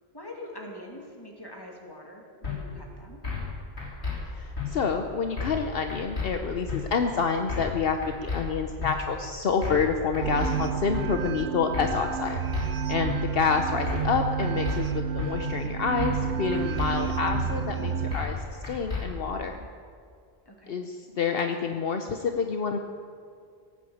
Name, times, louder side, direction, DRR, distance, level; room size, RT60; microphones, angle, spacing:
voice 1, 0.1-3.2 20.5-20.8, left 1 dB, 20° left, 0 dB, 2.4 m, -44 dB
sound 1, 2.4-2.6 3.2-3.5 3.8-4.2 4.6-4.7 5.4-5.6 5.9-6.3 6.7-6.8 7.5-7.8 8.0-8.4 8.8-8.9 9.6-9.9 10.1-10.5 10.9-11.1 11.7-12.0 12.3-12.7 13.1-13.2 13.9-14.1 14.4-14.8 15.2-15.3 16.0-16.3 16.5-16.9 17.3-17.4 18.1-18.4 18.6-19.0, left 5 dB, 90° left, 3.9 m, -31 dB
voice 2, 4.3-12.4 12.9-19.6 20.7-22.8, left 5 dB, 65° left, 5 dB, 1.0 m, -28 dB
sound 2, 10.2-18.2, right 7 dB, 75° right, 1.0 m, -30 dB
18.0 x 9.1 x 7.9 m, 2.3 s
omnidirectional pair, 1.1 m